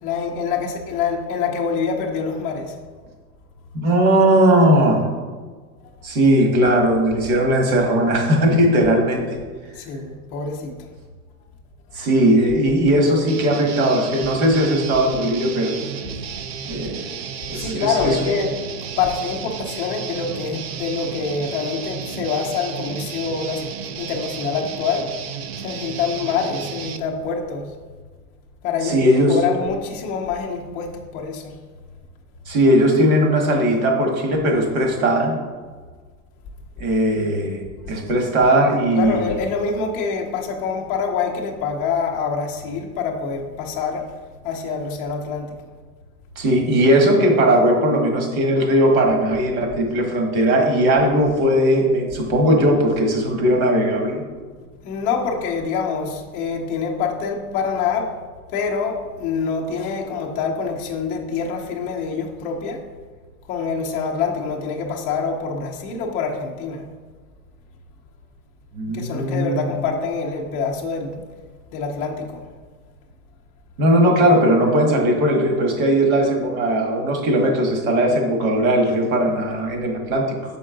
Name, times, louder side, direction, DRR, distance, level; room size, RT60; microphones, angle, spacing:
voice 1, 0.0-2.7 9.7-10.7 17.5-18.6 19.0-25.1 25.6-27.7 28.6-31.6 38.9-44.2 44.4-45.6 54.8-58.2 58.5-62.9 63.5-66.9 68.9-71.2 71.7-72.4, left 5 dB, 20° left, -1 dB, 0.5 m, -25 dB
voice 2, 3.7-5.1 6.0-9.4 11.9-15.8 16.7-17.1 17.5-18.4 28.8-29.4 32.5-35.3 36.8-37.6 37.9-39.2 46.3-54.2 68.7-69.6 73.8-80.4, right 1 dB, 65° right, 2 dB, 1.7 m, -18 dB
Guitar, 13.3-27.0, right 7 dB, 45° right, 0.4 m, -33 dB
6.3 x 4.6 x 3.7 m, 1.5 s
hypercardioid pair, 140°, 46 cm